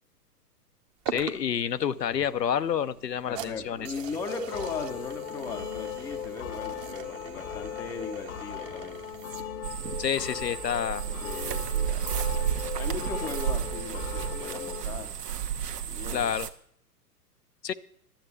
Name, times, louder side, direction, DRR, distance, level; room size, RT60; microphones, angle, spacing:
voice 1, 1.1-3.9 10.0-11.0 16.1-16.5 17.6-17.7, left 8 dB, 85° left, 12 dB, 0.7 m, -28 dB
sound 1, 1.1-11.9, right 10 dB, 25° right, 0.7 m, -43 dB
voice 2, 3.3-9.0 11.2-12.5 12.8-15.1 15.8-16.3, left 4 dB, 5° left, 4 dB, 0.5 m, -38 dB
sound 2, 4.3-14.8, left 10 dB, 60° left, 0.9 m, -38 dB
sound 3, 9.6-16.5, right 9 dB, 75° right, 1.2 m, -32 dB
11.5 x 6.8 x 8.1 m, 0.65 s
figure-of-eight pair, 115°, 48 cm